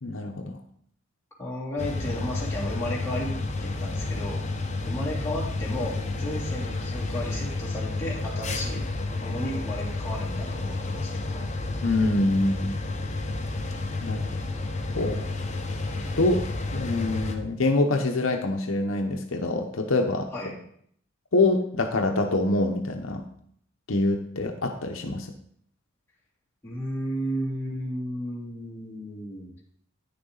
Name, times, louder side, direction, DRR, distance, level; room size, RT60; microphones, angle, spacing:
voice 1, 0.0-0.6 11.8-12.8 14.0-14.2 15.0-15.2 16.2-16.4 16.7-20.3 21.3-23.2 23.9-25.3, left 2 dB, 80° left, 4 dB, 0.9 m, -25 dB
voice 2, 1.4-3.3 3.6-4.4 4.8-8.8 9.2-11.5 20.3-20.6 26.6-29.5, equal, 15° left, -8 dB, 3.0 m, -33 dB
sound 1, 1.8-17.4, left 2 dB, 35° left, 0.9 m, -31 dB
9.8 x 6.9 x 3.9 m, 0.65 s
head